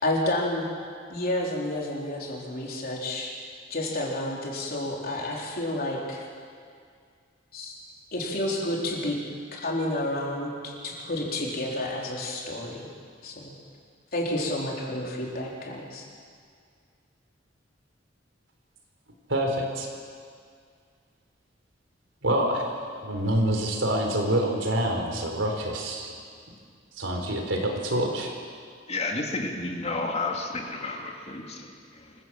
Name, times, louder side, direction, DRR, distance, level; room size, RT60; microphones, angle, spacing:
voice 1, 0.0-0.7 1.1-3.3 3.7-6.2 7.5-7.7 8.1-9.2 9.5-12.9 13.2-13.5 14.1-16.1, left 1 dB, 50° left, -2 dB, 4.2 m, -30 dB
voice 2, 19.3-19.9 22.2-26.1 27.0-28.3, right 1 dB, 85° right, 2 dB, 4.0 m, -26 dB
voice 3, 28.9-32.1, left 3 dB, 35° left, 2 dB, 2.3 m, -31 dB
25.0 x 16.0 x 7.6 m, 2.2 s
head